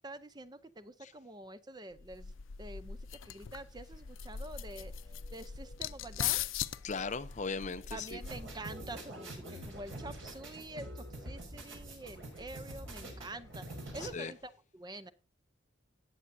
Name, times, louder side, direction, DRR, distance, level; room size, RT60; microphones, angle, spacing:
voice 1, 0.0-2.3 2.6-4.9 5.3-6.5 7.9-15.1, right 2 dB, 20° right, 0.6 m, -47 dB
sound 1, 2.0-8.7, left 10 dB, 85° left, 0.6 m, -40 dB
sound 2, 3.5-14.5, left 1 dB, 15° left, 2.9 m, -62 dB
voice 2, 6.8-8.2 14.1-14.3, left 4 dB, 35° left, 0.6 m, -38 dB
sound 3, 8.2-14.1, right 1 dB, 80° right, 5.3 m, -45 dB
18.0 x 7.2 x 2.7 m
head